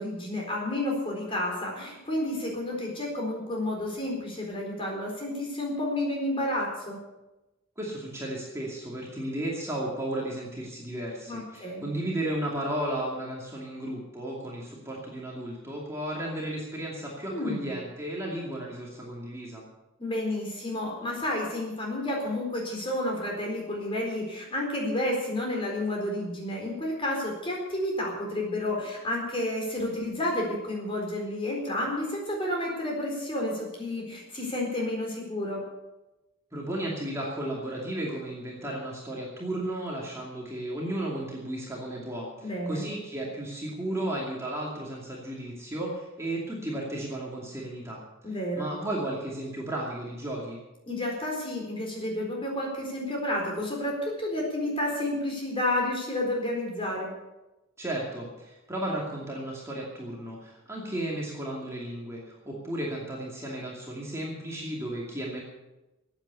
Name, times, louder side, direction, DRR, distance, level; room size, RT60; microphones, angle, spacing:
voice 1, 0.0-7.0 11.3-11.9 17.3-17.7 20.0-35.6 42.4-42.8 48.2-48.7 50.9-57.1, left 1 dB, 25° left, -1 dB, 4.2 m, -30 dB
voice 2, 7.8-19.6 36.5-50.6 57.8-65.4, right 1 dB, 15° right, -3 dB, 2.5 m, -34 dB
14.5 x 8.9 x 8.3 m, 1.0 s
head